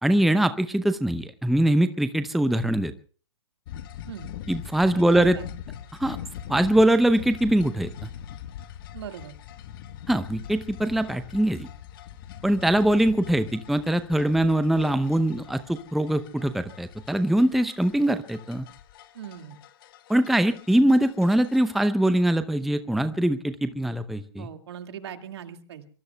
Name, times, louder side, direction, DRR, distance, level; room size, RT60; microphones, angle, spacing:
voice 1, 0.0-2.9 4.5-5.4 6.0-6.2 6.5-8.1 10.1-11.7 12.4-18.7 20.1-24.5, right 1 dB, ahead, 11 dB, 0.7 m, -22 dB
sound 1, 3.7-21.9, left 10 dB, 50° left, 1.3 m, -42 dB
voice 2, 5.0-5.5 8.9-9.4 19.1-19.6 24.4-25.9, right 9 dB, 65° right, 6 dB, 2.1 m, -40 dB
24.5 x 24.5 x 2.3 m, 0.41 s
hypercardioid pair, 120°, 15 cm